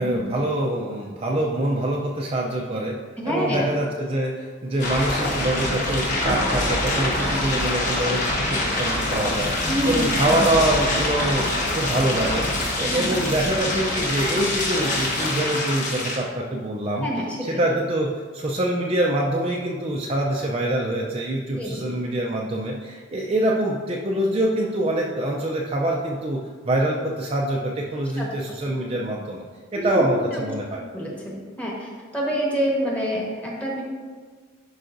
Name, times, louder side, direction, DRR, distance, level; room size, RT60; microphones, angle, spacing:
voice 1, 0.0-3.0 3.2-12.4 12.8-17.1 17.4-29.4 29.7-30.8, right 1 dB, 30° right, -2 dB, 0.5 m, -25 dB
voice 2, 3.2-3.6 9.7-10.1 12.8-13.1 17.0-17.5 21.6-21.9 28.2-28.3 29.8-30.0 30.3-30.4 30.9-33.8, equal, 5° left, -3 dB, 1.2 m, -27 dB
sound 1, 4.8-16.2, left 1 dB, 40° left, 1.3 m, -25 dB
11.0 x 4.8 x 2.6 m, 1.5 s
head